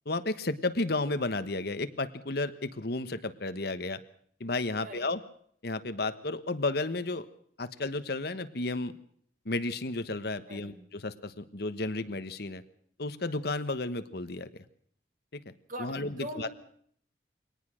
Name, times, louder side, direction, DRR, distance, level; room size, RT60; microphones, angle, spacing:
voice 1, 0.0-4.0 4.4-5.2 5.6-7.3 7.6-8.9 9.4-10.7 11.0-12.6 13.0-14.5 15.3-15.5 15.8-16.5, left 2 dB, 60° left, 11 dB, 1.3 m, -32 dB
voice 2, 10.5-10.8 15.7-16.5, equal, 50° right, 6 dB, 4.0 m, -41 dB
23.5 x 19.0 x 6.4 m, 0.63 s
head